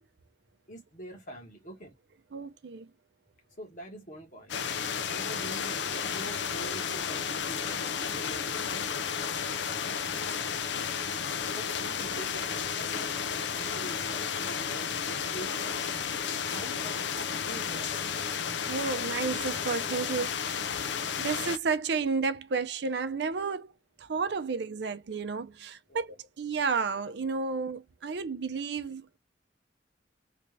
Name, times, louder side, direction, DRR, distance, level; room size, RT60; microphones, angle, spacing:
voice 1, 0.7-1.9 3.6-4.6 5.1-9.0 11.2-14.9 15.2-15.8 16.4-18.0 25.9-26.0, right 1 dB, 45° left, 1.5 m, -45 dB
voice 2, 2.3-2.9 15.1-15.2 18.7-20.9 21.2-23.7 24.0-29.1, right 5 dB, 65° right, 0.5 m, -32 dB
sound 1, 4.5-21.6, left 7 dB, 75° left, 0.5 m, -32 dB
3.2 x 2.6 x 3.2 m
head